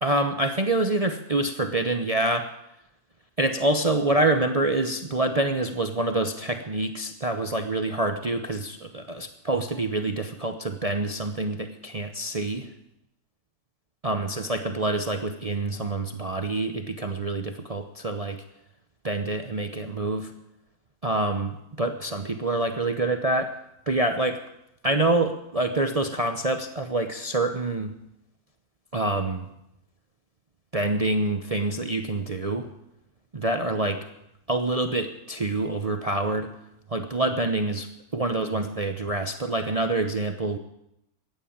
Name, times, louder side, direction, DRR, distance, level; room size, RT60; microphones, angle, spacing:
voice 1, 0.0-2.5 3.4-12.7 14.0-18.4 19.0-20.3 21.0-23.5 23.9-24.4 24.8-27.9 28.9-29.5 30.7-32.7 33.3-34.0 34.5-36.5 36.9-40.6, right 2 dB, 30° right, 7 dB, 0.8 m, -26 dB
14.5 x 9.9 x 8.6 m, 0.82 s
omnidirectional pair, 1.6 m